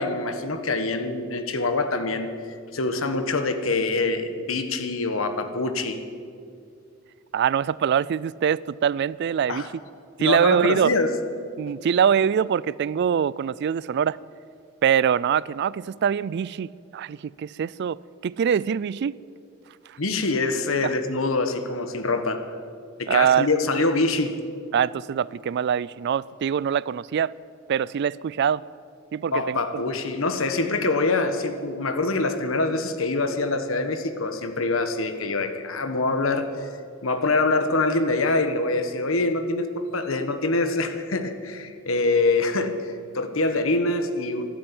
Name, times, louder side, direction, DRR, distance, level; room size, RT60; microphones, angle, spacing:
voice 1, 0.0-2.3 2.7-6.0 9.5-9.7 10.2-11.2 20.0-22.4 23.0-24.4 29.3-36.7 37.0-44.4, left 3 dB, 75° left, 1.3 m, -25 dB
voice 2, 7.3-9.7 10.2-10.9 11.6-14.2 14.8-19.2 20.8-20.9 23.1-23.5 24.7-27.3 27.7-28.6 29.1-29.8, right 8 dB, 55° right, 0.3 m, -23 dB
13.5 x 12.0 x 8.7 m
head